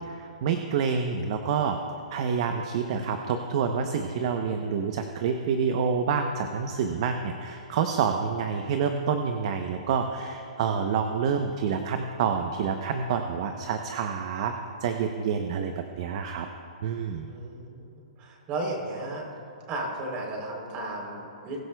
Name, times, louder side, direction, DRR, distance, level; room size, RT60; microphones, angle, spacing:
voice 1, 0.1-1.8 2.1-14.5 14.8-16.5 16.8-17.3, right 6 dB, 50° right, 6 dB, 0.7 m, -28 dB
voice 2, 17.3-19.2 19.7-21.6, right 2 dB, 30° right, 0 dB, 3.4 m, -34 dB
21.5 x 12.5 x 2.3 m, 2.6 s
hypercardioid pair, 150°, 4 cm